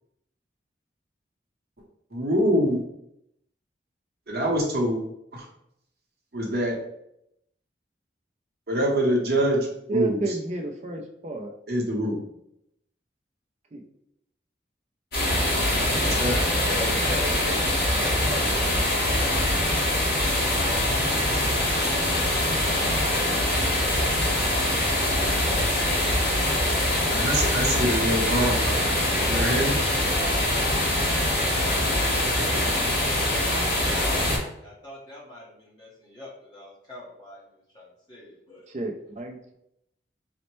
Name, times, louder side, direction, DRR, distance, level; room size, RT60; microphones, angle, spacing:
voice 1, 2.1-2.8 4.3-5.0 5.3-5.4 6.3-6.7 8.7-10.2 11.7-12.2 16.0-16.3 27.1-29.8, equal, 55° right, -2 dB, 0.8 m, -25 dB
voice 2, 9.9-11.5 13.7-13.8 38.7-39.5, right 3 dB, 35° right, 3 dB, 0.4 m, -30 dB
sound 1, 15.1-34.4, left 1 dB, 55° left, 1.2 m, -23 dB
voice 3, 16.6-20.8 23.0-26.1 26.5-27.0 29.1-30.7 31.0-37.4 37.7-38.7, left 1 dB, 20° left, -6 dB, 0.8 m, -43 dB
4.2 x 2.1 x 3.0 m, 0.77 s
head